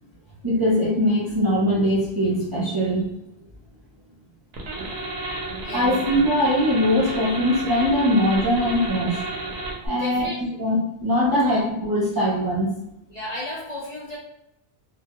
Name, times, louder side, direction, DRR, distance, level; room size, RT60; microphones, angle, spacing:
voice 1, 0.4-3.1 4.7-4.9 5.7-9.2 9.8-10.3 10.6-10.8 11.0-12.7, equal, 25° right, -7 dB, 0.5 m, -21 dB
sound 1, 4.5-9.9, right 2 dB, 70° right, 0.9 m, -31 dB
voice 2, 5.6-5.9 9.9-10.6 11.3-11.6 13.1-14.2, left 1 dB, 50° left, -6 dB, 0.5 m, -34 dB
2.2 x 2.1 x 2.8 m, 0.85 s
omnidirectional pair, 1.1 m